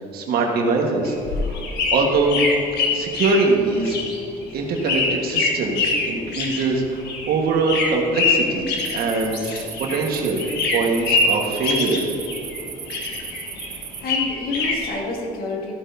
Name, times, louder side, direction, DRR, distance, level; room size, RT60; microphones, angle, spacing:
voice 1, 0.1-1.2 1.4-1.6 1.9-2.4 2.9-4.0 4.5-10.4 10.7-12.1, right 3 dB, 65° right, 1 dB, 1.5 m, -22 dB
sound 1, 1.0-10.1 10.4-12.6 12.9-14.9, left 3 dB, 80° left, 1.4 m, -25 dB
sound 2, 8.8-14.0, right 8 dB, 45° right, 0.9 m, -37 dB
voice 2, 13.1-13.5 14.0-15.7, left 2 dB, 60° left, -1 dB, 2.2 m, -29 dB
14.5 x 9.8 x 2.7 m, 2.5 s
cardioid pair, 110°, 17 cm